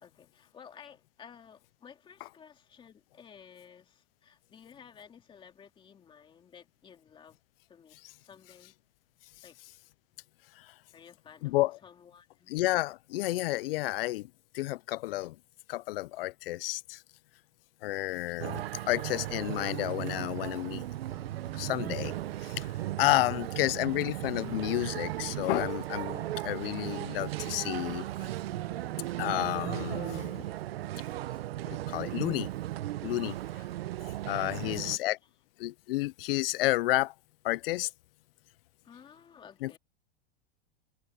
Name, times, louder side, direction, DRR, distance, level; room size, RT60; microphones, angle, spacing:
voice 1, 0.0-7.4 7.7-8.7 9.4-9.6 10.9-11.5 11.8-12.6 34.6-35.0 38.8-39.8, left 7 dB, 15° left, 2.4 m, -54 dB
voice 2, 11.4-11.8 12.5-15.4 15.7-17.0 17.8-20.9 21.5-22.1 22.4-22.7 23.0-28.1 29.2-30.4 31.7-32.5 33.0-33.4 34.2-35.2 35.6-37.1 37.4-37.9 39.6-39.8, left 18 dB, 75° left, 0.5 m, -31 dB
sound 1, 18.4-35.0, right 14 dB, 90° right, 1.0 m, -36 dB
sound 2, 19.4-32.4, right 4 dB, 10° right, 1.4 m, -55 dB
supercardioid pair, 160°, 29 cm